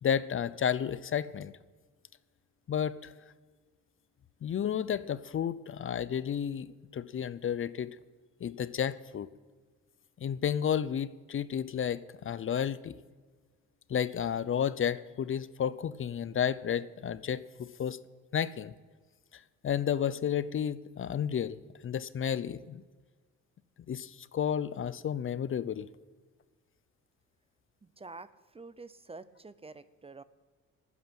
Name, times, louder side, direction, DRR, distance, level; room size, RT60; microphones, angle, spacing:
voice 1, 0.0-1.5 2.7-3.1 4.4-6.7 6.9-8.0 8.4-9.3 10.2-12.9 13.9-18.0 18.3-18.7 19.6-22.8 23.9-25.9, left 8 dB, 45° left, 17 dB, 0.6 m, -32 dB
voice 2, 27.8-28.3 28.5-30.2, right 3 dB, 20° right, 15 dB, 0.7 m, -47 dB
12.0 x 9.5 x 8.7 m, 1.4 s
cardioid pair, 90°, 30 cm